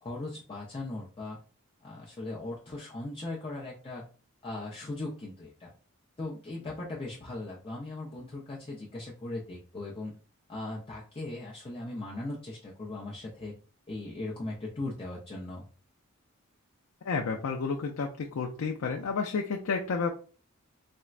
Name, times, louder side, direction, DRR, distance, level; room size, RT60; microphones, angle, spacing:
voice 1, 0.0-1.4 1.8-4.0 4.4-5.7 6.2-10.1 10.5-13.5 13.9-15.6, left 2 dB, 25° left, -5 dB, 0.5 m, -38 dB
voice 2, 17.0-20.1, left 5 dB, 80° left, 2 dB, 0.4 m, -31 dB
4.2 x 2.1 x 2.4 m, 0.38 s
head